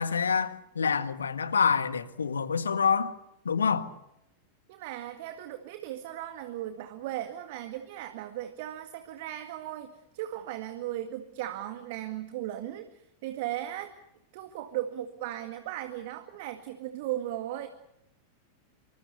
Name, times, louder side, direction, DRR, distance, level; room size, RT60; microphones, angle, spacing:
voice 1, 0.0-3.1 3.4-3.9, left 6 dB, 70° left, 1.6 m, -27 dB
voice 2, 4.7-13.9 14.3-17.7, right 13 dB, 50° right, 2.0 m, -37 dB
27.0 x 25.0 x 6.9 m
figure-of-eight pair, 90°, 0 cm